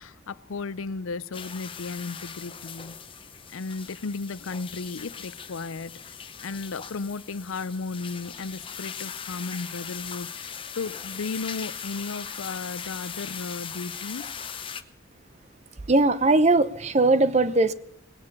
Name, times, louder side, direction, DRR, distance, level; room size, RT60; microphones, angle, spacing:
voice 1, 0.0-3.0 3.5-6.2 6.4-14.4, left 4 dB, 85° left, 0.6 m, -35 dB
sound 1, 1.3-14.8, left 7 dB, 25° left, 0.8 m, -39 dB
voice 2, 15.9-17.7, right 2 dB, 35° right, 0.8 m, -20 dB
20.0 x 9.8 x 6.8 m
head